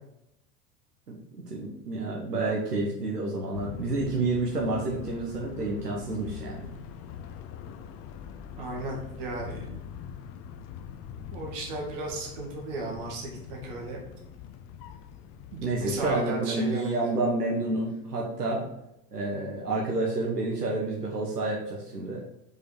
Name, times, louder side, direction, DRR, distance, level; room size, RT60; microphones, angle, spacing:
voice 1, 1.1-6.7 15.6-18.6 19.1-22.3, right 2 dB, 80° right, -3 dB, 1.3 m, -29 dB
sound 1, 3.5-16.2, left 8 dB, 35° left, 0.6 m, -43 dB
voice 2, 8.6-9.9 11.3-14.0 15.5-17.1, right 2 dB, 45° right, -1 dB, 2.2 m, -35 dB
5.3 x 4.8 x 4.6 m, 0.84 s
figure-of-eight pair, 85°, 46 cm